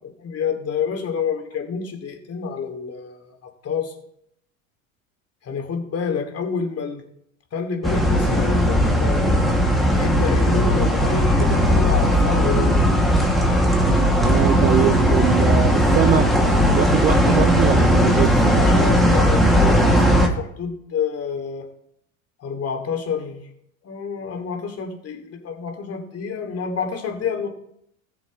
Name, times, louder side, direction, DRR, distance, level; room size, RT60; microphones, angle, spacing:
voice 1, 0.2-3.9 5.4-7.0 7.5-9.4 9.9-12.9 18.5-21.7 22.4-23.4 23.8-27.5, left 6 dB, 35° left, 4 dB, 2.8 m, -28 dB
sound 1, 7.8-20.3, equal, ahead, 2.5 m, -17 dB
voice 2, 14.2-16.3 16.7-18.5, right 11 dB, 20° right, 13 dB, 0.3 m, -23 dB
20.0 x 7.6 x 3.3 m, 0.75 s
hypercardioid pair, 80°, 41 cm